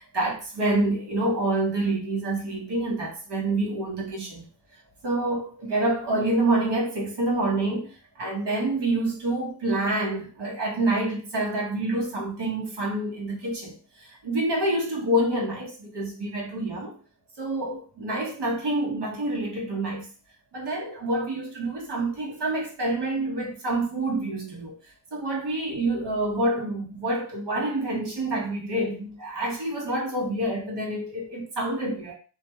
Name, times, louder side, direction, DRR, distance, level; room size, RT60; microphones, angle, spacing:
voice 1, 0.0-4.4 5.0-17.0 17.4-20.1 20.5-24.8 25.1-32.1, right 2 dB, 60° right, 1.2 m, -27 dB
2.5 x 2.3 x 3.1 m
cardioid pair, 60°, 47 cm